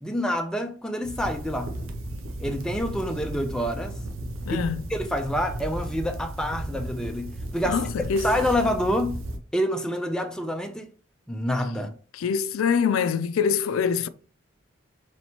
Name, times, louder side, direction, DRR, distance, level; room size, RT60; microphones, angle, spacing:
voice 1, 0.0-1.7 2.4-4.0 4.5-4.7 4.9-7.8 8.2-9.2 9.5-10.9 11.3-11.9, equal, 5° left, 0.4 m, -27 dB
sound 1, 1.0-9.4, right 1 dB, 80° right, 0.7 m, -35 dB
voice 2, 4.5-4.8 7.7-8.4 12.1-14.1, left 6 dB, 80° left, 0.4 m, -24 dB
4.3 x 3.2 x 2.9 m
head